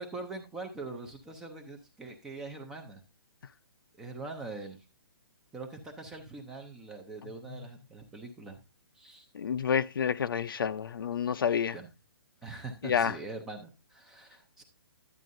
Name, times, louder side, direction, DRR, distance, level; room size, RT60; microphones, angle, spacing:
voice 1, 0.0-3.0 4.0-4.8 5.5-8.6 9.0-9.3 11.7-11.9 12.4-14.6, right 3 dB, 5° right, 0.4 m, -43 dB
voice 2, 9.3-11.8 12.8-13.2, left 7 dB, 60° left, 0.5 m, -29 dB
11.0 x 8.3 x 2.6 m
hypercardioid pair, 175°, 13 cm